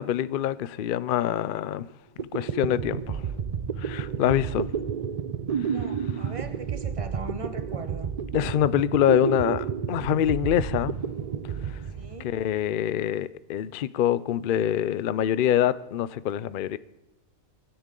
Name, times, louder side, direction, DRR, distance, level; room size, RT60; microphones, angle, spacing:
voice 1, 0.0-1.9 2.3-3.2 3.8-4.7 8.3-10.9 12.2-16.8, left 11 dB, 60° left, 0.5 m, -25 dB
sound 1, 1.9-2.0 2.2-12.7, right 7 dB, 80° right, 0.3 m, -31 dB
voice 2, 5.7-8.1 11.9-12.3, right 2 dB, 25° right, 1.3 m, -40 dB
23.5 x 10.0 x 3.8 m
omnidirectional pair, 1.4 m